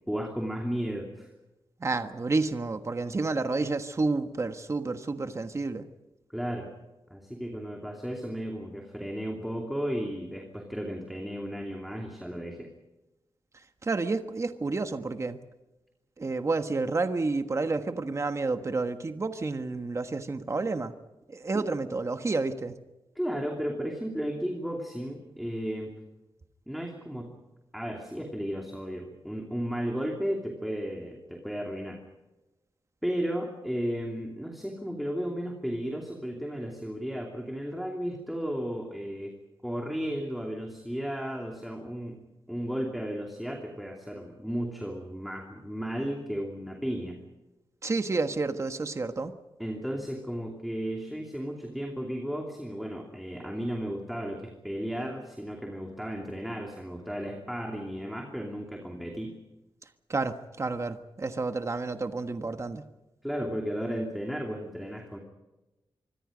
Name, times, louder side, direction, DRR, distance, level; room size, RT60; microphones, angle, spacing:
voice 1, 0.1-1.3 6.3-6.7 7.1-12.7 21.5-21.6 23.1-25.9 26.7-27.3 27.7-32.0 33.0-39.3 39.6-42.2 42.5-47.2 49.6-59.4 63.2-65.2, equal, ahead, 1 dB, 2.8 m, -34 dB
voice 2, 1.8-5.9 13.8-15.4 16.2-20.9 21.3-22.8 47.8-49.3 60.1-62.9, right 3 dB, 30° right, 8 dB, 1.4 m, -30 dB
26.0 x 24.0 x 5.2 m, 1.0 s
wide cardioid pair, 155°, 9 cm